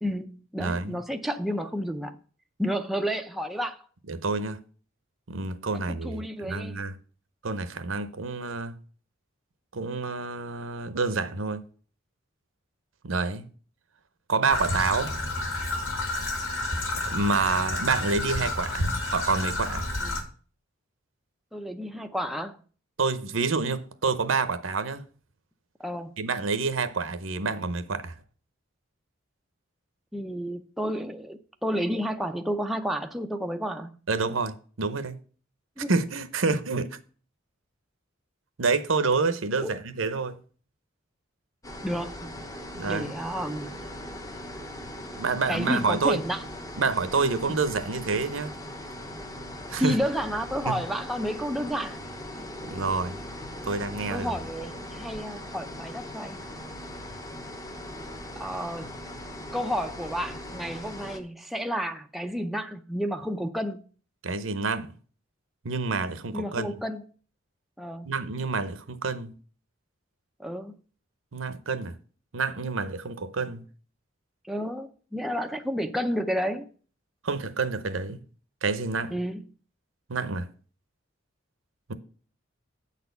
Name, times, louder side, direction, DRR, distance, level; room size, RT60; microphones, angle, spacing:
voice 1, 0.0-2.2 2.6-3.8 5.7-6.8 20.0-20.2 21.5-22.6 25.8-26.1 30.1-34.0 35.8-35.9 39.6-39.7 41.8-42.3 42.8-43.8 45.5-46.4 47.5-47.6 49.8-52.0 54.1-56.4 58.4-59.0 59.5-63.8 66.3-67.1 67.8-68.1 70.4-70.8 74.5-76.7 79.1-79.4, equal, ahead, 0.5 m, -31 dB
voice 2, 0.6-1.0 4.1-4.6 5.3-7.0 7.4-8.8 9.7-11.6 13.0-13.5 14.3-15.1 17.1-19.9 23.0-25.0 26.2-28.1 34.1-35.2 35.9-37.0 38.6-40.4 42.7-43.1 45.2-46.2 46.8-48.5 49.7-50.0 50.7-50.8 52.7-53.2 53.6-54.3 64.2-64.9 65.6-66.7 68.1-69.3 71.3-71.9 72.3-73.6 77.2-78.2 78.6-79.1 80.1-80.5 81.9-82.0, right 4 dB, 75° right, 0.8 m, -28 dB
Traffic noise roadway noise / Trickle dribble, 14.5-20.2, left 2 dB, 75° left, 1.9 m, -30 dB
sound 1, 41.6-61.2, left 1 dB, 15° left, 0.8 m, -40 dB
8.5 x 4.2 x 6.8 m
head